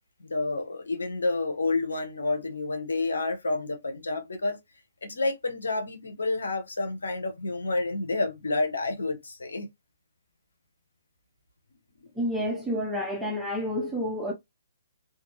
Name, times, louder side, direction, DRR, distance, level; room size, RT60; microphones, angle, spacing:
voice 1, 0.2-4.6 5.0-9.7 12.0-12.1, left 3 dB, 85° left, 0.8 m, -29 dB
voice 2, 12.1-14.3, equal, 5° right, 0.6 m, -29 dB
2.6 x 2.5 x 2.9 m
hypercardioid pair, 135°, 0 cm